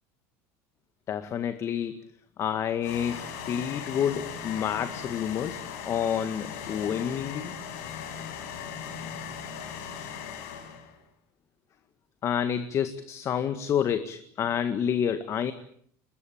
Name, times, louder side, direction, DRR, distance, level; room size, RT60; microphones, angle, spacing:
voice 1, 1.1-2.0 2.4-5.6 5.8-7.6 12.2-15.5, left 8 dB, 40° left, 10 dB, 1.9 m, -29 dB
sound 1, 2.8-10.9, left 7 dB, 85° left, 5.8 m, -38 dB
23.5 x 21.5 x 8.7 m, 0.64 s
supercardioid pair, 120°, 7 cm